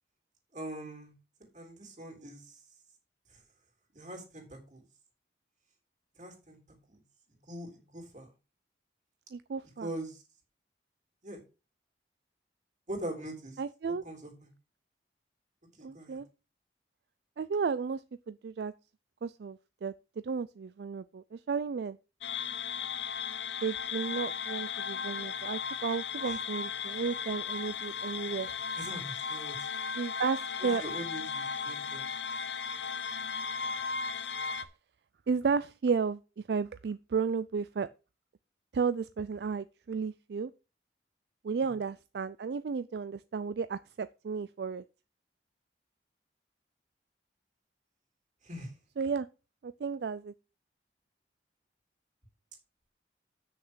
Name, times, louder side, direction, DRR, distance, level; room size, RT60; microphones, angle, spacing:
voice 1, 0.5-1.1 1.4-2.6 3.3-3.4 3.9-4.8 6.2-6.6 6.9-7.0 7.3-8.3 9.8-10.2 11.2-11.4 12.9-13.6 13.9-14.5 15.8-16.2 26.2-26.4 28.7-29.7 30.6-32.1 41.6-41.7 48.4-48.7, right 1 dB, 40° right, 3.4 m, -42 dB
voice 2, 9.3-9.9 13.6-14.0 15.8-16.3 17.4-18.7 19.2-19.9 20.2-22.0 23.6-28.5 30.0-30.8 33.6-33.9 35.3-37.9 38.7-40.5 41.4-44.8 49.0-49.3 49.6-50.3, right 5 dB, 65° right, 0.4 m, -33 dB
sound 1, 22.2-34.6, left 6 dB, 80° left, 0.8 m, -36 dB
7.9 x 6.6 x 6.2 m
head